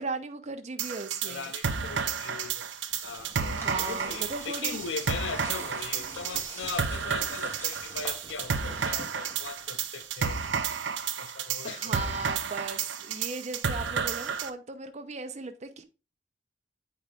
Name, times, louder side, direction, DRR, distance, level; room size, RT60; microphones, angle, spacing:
voice 1, 0.0-1.5 3.4-4.8 11.6-15.8, right 3 dB, 40° right, 0.8 m, -37 dB
sound 1, 0.8-14.5, right 6 dB, 90° right, 0.7 m, -32 dB
voice 2, 1.3-2.7 3.0-10.4 11.2-12.2, left 5 dB, 85° left, 0.6 m, -39 dB
Plant Growing, 2.6-10.4, right 1 dB, 15° left, 2.1 m, -46 dB
8.5 x 4.7 x 2.4 m
head